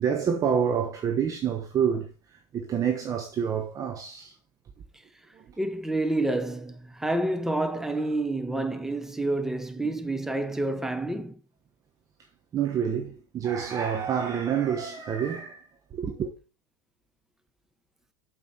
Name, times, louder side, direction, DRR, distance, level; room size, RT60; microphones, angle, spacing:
voice 1, 0.0-4.4 5.3-5.6 9.8-10.0 12.2-16.3, right 7 dB, 30° right, 1.2 m, -28 dB
voice 2, 5.6-11.4, right 2 dB, 5° right, 1.2 m, -28 dB
8.6 x 7.0 x 4.3 m
hypercardioid pair, 85°, 11 cm